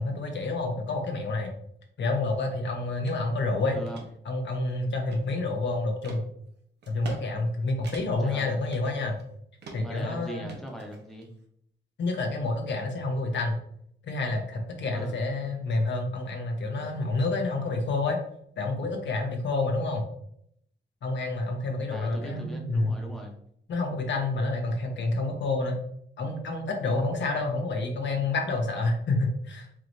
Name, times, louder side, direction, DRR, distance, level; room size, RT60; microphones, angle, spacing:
voice 1, 0.0-1.5 2.0-3.8 4.2-6.2 6.9-9.2 9.7-10.5 12.0-13.6 14.0-18.2 18.6-20.0 21.0-23.0 23.7-25.8 26.2-29.7, left 2 dB, 75° left, 3 dB, 0.8 m, -28 dB
sound 1, 3.1-3.2 3.6-4.1 4.6-5.5 6.0-6.2 6.8-7.2 7.5-7.6 7.8-8.3 8.7-9.3 9.6-10.0 10.5-11.3, right 3 dB, 70° right, 0.8 m, -44 dB
voice 2, 8.2-8.5 9.7-11.3 14.9-15.2 21.9-23.3, right 1 dB, ahead, 0 dB, 0.7 m, -39 dB
4.7 x 3.0 x 2.6 m, 0.69 s
wide cardioid pair, 170°, 19 cm